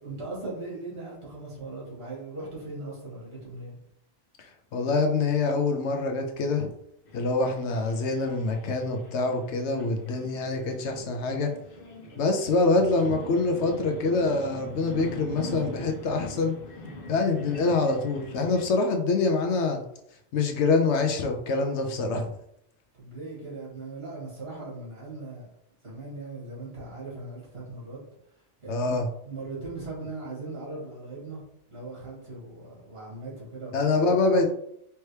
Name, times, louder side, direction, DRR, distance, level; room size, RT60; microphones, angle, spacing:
voice 1, 0.0-3.8 23.0-25.4 25.8-28.0 28.6-31.4 31.7-33.9, right 2 dB, 55° right, -5 dB, 2.1 m, -39 dB
voice 2, 4.7-6.7 7.1-11.5 12.2-16.5 17.1-19.8 20.3-22.3 28.7-29.1 33.7-34.5, left 3 dB, 75° left, 4 dB, 0.9 m, -25 dB
sound 1, 7.1-18.7, equal, 50° left, 1.1 m, -42 dB
4.5 x 2.9 x 3.2 m, 0.74 s
omnidirectional pair, 1.2 m